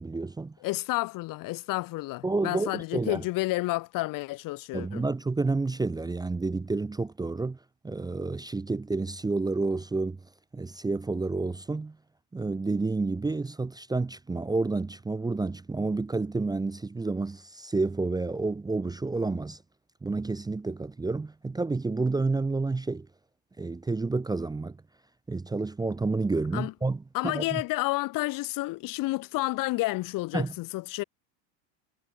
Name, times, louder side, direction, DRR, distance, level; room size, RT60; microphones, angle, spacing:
voice 1, 0.0-0.6 2.2-3.2 4.7-7.6 7.8-10.2 10.5-12.0 12.3-19.6 20.0-23.1 23.6-24.8 25.3-27.6 30.3-30.5, right 3 dB, 10° right, 0.7 m, -30 dB
voice 2, 0.6-5.0 26.5-26.7 27.1-31.0, left 20 dB, 45° left, 0.9 m, -30 dB
supercardioid pair, 115°, 48 cm